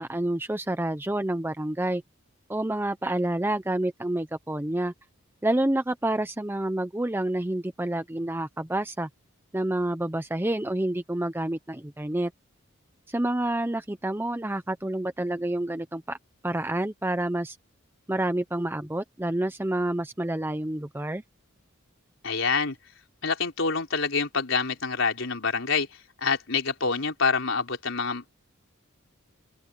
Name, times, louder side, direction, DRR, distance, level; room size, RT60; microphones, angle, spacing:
voice 1, 0.0-2.0 2.5-4.9 5.4-9.1 9.5-12.3 13.1-16.2 16.4-17.6 18.1-21.2, right 1 dB, 10° right, 0.6 m, -28 dB
voice 2, 22.2-22.8 23.2-25.9 26.2-28.3, left 5 dB, 70° left, 4.1 m, -26 dB
open air
head